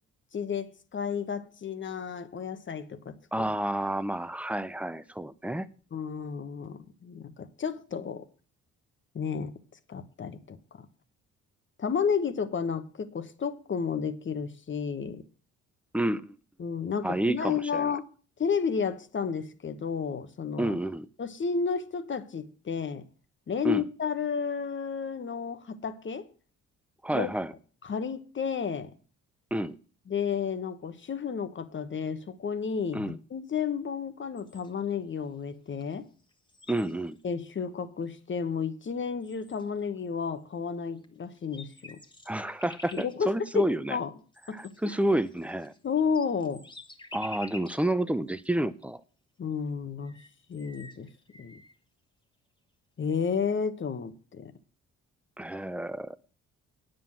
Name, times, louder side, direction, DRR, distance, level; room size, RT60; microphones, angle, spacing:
voice 1, 0.3-3.5 5.9-8.3 9.1-9.5 9.9-10.6 11.8-15.2 16.6-18.0 18.4-20.8 21.2-23.0 23.5-26.3 27.1-27.3 27.8-28.9 30.1-36.1 37.2-42.0 42.9-44.1 44.5-44.6 44.8-45.0 45.8-46.6 49.4-50.2 50.5-51.1 51.4-51.6 53.0-54.5, left 6 dB, 40° left, 1.2 m, -32 dB
voice 2, 3.3-5.7 15.9-16.3 17.0-17.9 20.6-21.1 23.6-23.8 27.0-27.5 29.5-29.8 32.9-33.2 36.7-37.2 42.3-44.0 44.5-45.7 47.1-49.0 55.4-56.2, right 1 dB, 5° right, 0.6 m, -29 dB
sound 1, 34.4-34.9 35.8-35.9 36.2-37.3 38.0-38.1 38.9-39.0 39.2-39.9 41.0-41.1 41.4-43.2 44.3-47.9 48.4-48.5 49.7-49.8 50.0-51.7, left 2 dB, 15° left, 1.4 m, -48 dB
9.2 x 7.8 x 7.3 m
cardioid pair, 90°, 30 cm